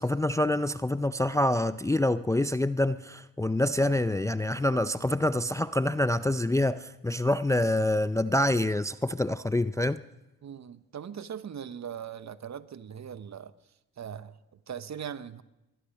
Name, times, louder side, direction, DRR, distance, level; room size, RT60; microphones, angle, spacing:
voice 1, 0.0-10.0, left 1 dB, 10° left, 0.4 m, -26 dB
voice 2, 10.4-13.5 14.0-15.4, right 8 dB, 45° right, 1.0 m, -40 dB
23.5 x 11.5 x 5.2 m
supercardioid pair, 55°, 37 cm